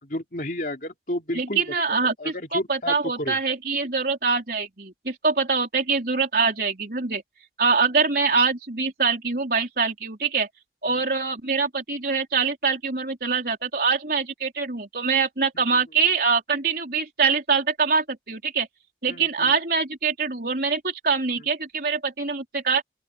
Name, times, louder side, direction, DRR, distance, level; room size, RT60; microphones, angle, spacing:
voice 1, 0.0-1.7 2.0-3.4 10.9-11.0 15.5-15.8 19.1-19.5, left 1 dB, 50° left, 3.4 m, -32 dB
voice 2, 1.3-7.2 7.6-10.5 10.8-18.7 19.0-22.8, right 5 dB, 55° right, 4.2 m, -24 dB
open air
head